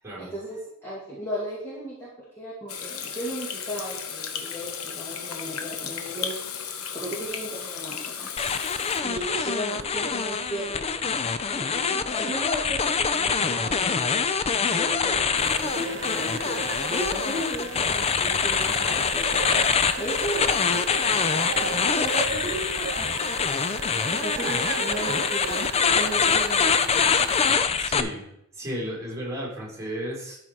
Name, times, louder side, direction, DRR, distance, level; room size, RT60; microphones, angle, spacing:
voice 1, 0.2-2.1 2.4-6.4 6.9-8.6 9.0-11.1 11.5-14.3 14.5-19.6 20.0-21.3 21.7-23.3 24.1-27.3, equal, 10° left, -8 dB, 2.2 m, -35 dB
Water tap faucet / Sink (filling or washing), 2.7-9.0, left 7 dB, 90° left, 0.9 m, -35 dB
sound 1, 8.4-28.0, left 6 dB, 30° left, 0.4 m, -25 dB
sound 2, 15.4-27.5, right 8 dB, 55° right, 0.4 m, -36 dB
voice 2, 27.8-28.3 28.5-30.4, equal, 15° right, -5 dB, 3.9 m, -33 dB
12.5 x 4.9 x 4.6 m, 0.77 s
head